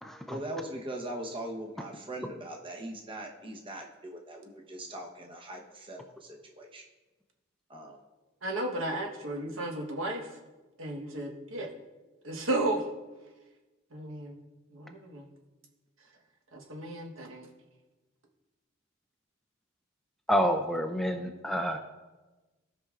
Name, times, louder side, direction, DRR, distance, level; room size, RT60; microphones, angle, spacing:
voice 1, 0.3-6.8 7.7-8.0, right 1 dB, 25° right, 1 dB, 0.9 m, -40 dB
voice 2, 8.4-10.3 10.8-11.7 12.2-12.8 13.9-14.4 14.7-15.3 16.5-17.5, right 2 dB, 85° right, 1 dB, 1.2 m, -34 dB
voice 3, 20.3-21.8, equal, ahead, 4 dB, 0.4 m, -28 dB
16.0 x 5.6 x 2.4 m, 1.2 s
head